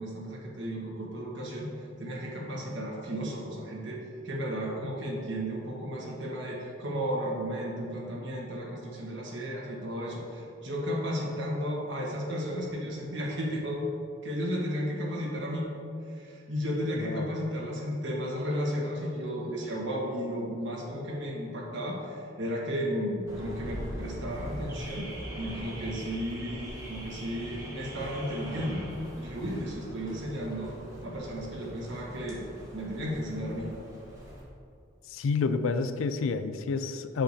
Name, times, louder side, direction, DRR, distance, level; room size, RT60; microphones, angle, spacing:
voice 1, 0.0-1.7 2.0-13.8 14.2-15.7 16.1-25.1 25.4-28.8 29.2-30.7 31.0-32.5 32.7-33.7, equal, 60° right, -3 dB, 1.4 m, -34 dB
voice 2, 17.0-17.3 35.1-37.2, left 4 dB, 75° left, 10 dB, 0.4 m, -29 dB
Car / Alarm, 23.3-34.4, equal, 15° right, 1.1 m, -41 dB
7.8 x 6.6 x 2.8 m, 2.6 s
head